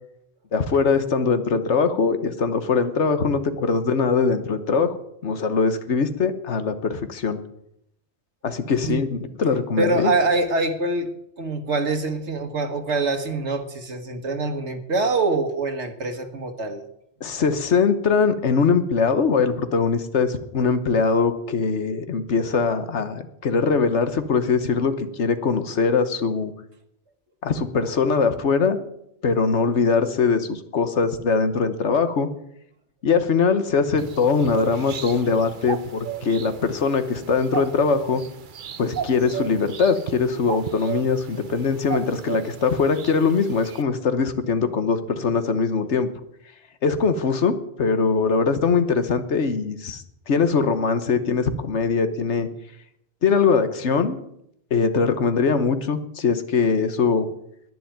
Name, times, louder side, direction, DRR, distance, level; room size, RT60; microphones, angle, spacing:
voice 1, 0.5-5.0 5.2-7.4 8.4-10.1 17.2-26.5 27.4-28.8 29.2-32.3 33.0-38.2 38.8-46.1 46.8-52.5 53.2-54.2 54.7-57.3, left 5 dB, 80° left, 10 dB, 1.5 m, -22 dB
voice 2, 9.8-11.1 11.4-16.8 17.3-17.4, right 3 dB, 80° right, 5 dB, 1.8 m, -24 dB
sound 1, 34.0-43.8, right 9 dB, 50° right, 0.8 m, -35 dB
11.0 x 10.0 x 9.2 m, 0.76 s
omnidirectional pair, 1.2 m